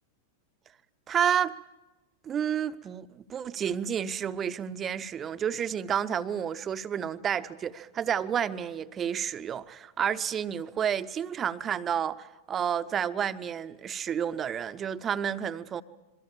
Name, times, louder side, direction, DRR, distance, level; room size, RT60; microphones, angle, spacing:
voice 1, 1.1-1.6 2.2-15.8, right 8 dB, 25° right, 0.9 m, -30 dB
27.5 x 23.0 x 7.3 m
figure-of-eight pair, 90°, 0 cm